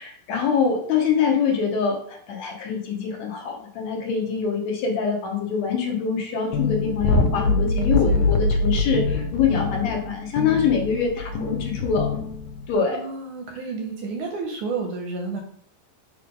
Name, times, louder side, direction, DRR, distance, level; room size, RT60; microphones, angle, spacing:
voice 1, 0.0-12.1 12.7-13.0, left 6 dB, 65° left, 1 dB, 1.9 m, -24 dB
sound 1, 6.5-12.7, left 3 dB, 80° left, 2.4 m, -24 dB
voice 2, 7.6-8.3 12.9-15.4, right 4 dB, 75° right, 2 dB, 1.9 m, -31 dB
6.9 x 3.2 x 5.2 m, 0.63 s
omnidirectional pair, 4.1 m